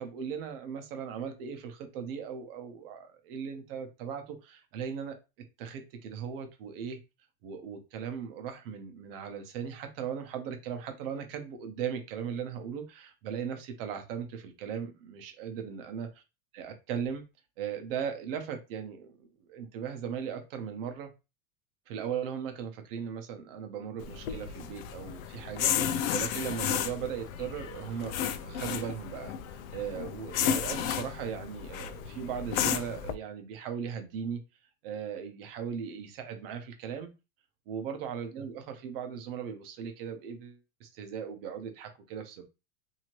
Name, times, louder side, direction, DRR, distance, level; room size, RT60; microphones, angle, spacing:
voice 1, 0.0-5.2 5.6-7.0 7.4-16.1 16.5-17.2 17.6-21.1 21.9-29.3 29.7-34.4 34.8-37.1 37.7-42.4, right 7 dB, 45° right, 5 dB, 0.8 m, -38 dB
sound 1, 24.0-33.1, left 9 dB, 85° left, 0.6 m, -33 dB
2.8 x 2.7 x 3.0 m, 0.27 s
supercardioid pair, 175°, 40 cm